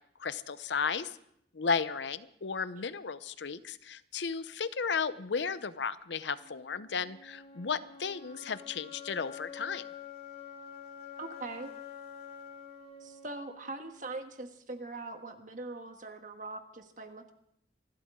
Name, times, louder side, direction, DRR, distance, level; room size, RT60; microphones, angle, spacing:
voice 1, 0.2-1.2 1.5-9.8, left 5 dB, 80° left, 14 dB, 0.7 m, -34 dB
sound 1, 6.4-14.4, left 7 dB, 35° left, 2.6 m, -48 dB
voice 2, 11.2-11.7 13.0-17.3, right 2 dB, 45° right, 6 dB, 1.4 m, -42 dB
26.5 x 12.5 x 3.7 m, 0.71 s
head